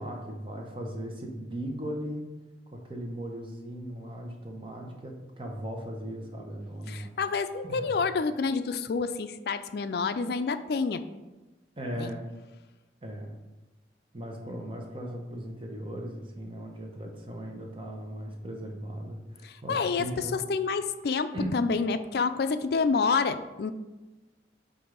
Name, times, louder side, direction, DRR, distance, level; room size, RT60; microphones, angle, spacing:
voice 1, 0.0-2.2 2.7-7.1 7.6-7.9 11.8-12.2 13.0-13.4 14.1-20.3 21.3-21.5, equal, 30° right, 1 dB, 0.9 m, -38 dB
voice 2, 6.9-11.0 12.0-12.1 19.4-23.7, left 4 dB, 60° left, 10 dB, 0.4 m, -28 dB
7.7 x 2.6 x 5.1 m, 1.1 s
head